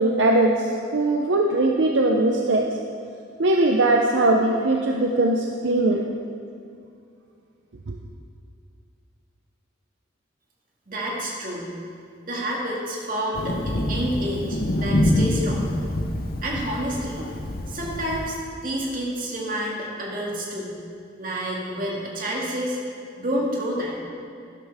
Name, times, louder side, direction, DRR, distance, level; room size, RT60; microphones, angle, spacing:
voice 1, 0.0-2.7 3.4-6.0 7.9-8.0, right 2 dB, 70° right, 1 dB, 0.7 m, -20 dB
voice 2, 10.9-11.7 12.3-15.8 16.4-17.3 17.7-20.8 21.2-22.8 23.2-24.0, equal, 45° right, -3 dB, 2.1 m, -29 dB
Thunder, 13.3-18.4, left 1 dB, 50° left, 0.8 m, -26 dB
12.0 x 11.5 x 3.6 m, 2.5 s
head